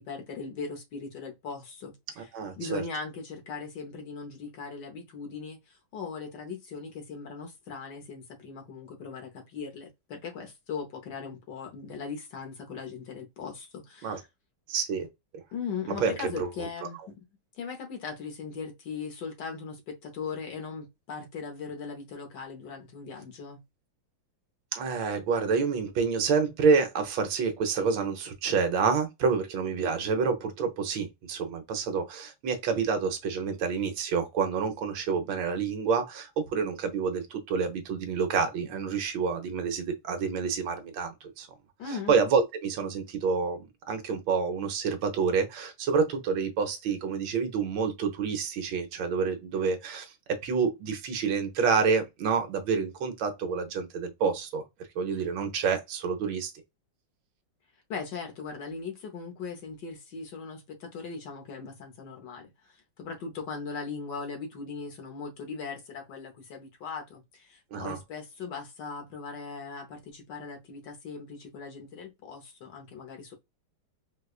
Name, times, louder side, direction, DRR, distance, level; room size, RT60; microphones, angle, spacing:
voice 1, 0.0-2.3 2.6-14.2 15.5-17.2 17.5-23.6 41.8-42.1 55.1-55.3 57.9-73.3, left 5 dB, 65° left, 1.4 m, -39 dB
voice 2, 2.3-2.8 14.0-14.2 14.7-15.1 15.9-16.5 24.7-41.5 41.9-54.6 55.0-56.5 67.7-68.0, right 5 dB, 75° right, 1.5 m, -28 dB
4.8 x 2.2 x 2.3 m
omnidirectional pair, 2.3 m